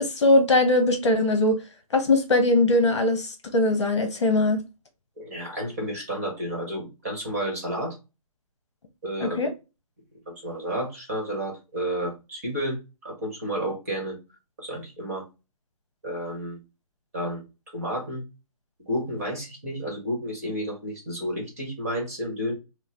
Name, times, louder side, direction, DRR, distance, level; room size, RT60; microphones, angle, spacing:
voice 1, 0.0-1.6 1.9-4.6 9.2-9.5, left 2 dB, 50° left, 1.0 m, -21 dB
voice 2, 5.2-8.0 9.0-9.5 10.3-14.2 14.6-15.3 16.0-16.6 17.1-17.4 17.7-18.2 18.9-22.5, equal, 25° right, 1.1 m, -31 dB
5.4 x 2.0 x 2.9 m
hypercardioid pair, 180°, 19 cm